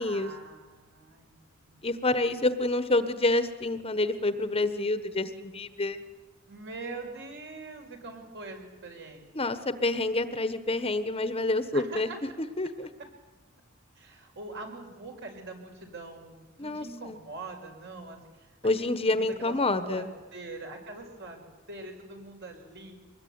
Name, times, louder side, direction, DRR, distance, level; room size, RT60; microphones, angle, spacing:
voice 1, 0.0-1.8 6.5-9.5 11.7-12.2 14.0-18.6 18.9-19.6 19.8-22.9, right 3 dB, 60° right, 3 dB, 5.5 m, -43 dB
voice 2, 1.8-6.0 9.3-12.1 12.6-12.9 16.6-17.2 18.6-20.1, left 2 dB, 30° left, 11 dB, 1.2 m, -28 dB
24.5 x 20.5 x 9.5 m, 1.2 s
head